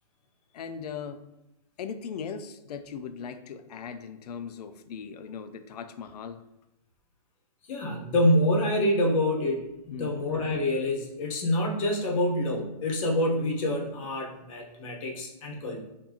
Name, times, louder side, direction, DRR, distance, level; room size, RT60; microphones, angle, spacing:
voice 1, 0.5-1.2 1.8-6.4 9.9-10.1, left 6 dB, 75° left, 10 dB, 0.4 m, -39 dB
voice 2, 7.7-15.8, left 1 dB, 55° left, 1 dB, 1.0 m, -26 dB
4.5 x 2.7 x 2.8 m, 0.92 s
hypercardioid pair, 135°, 21 cm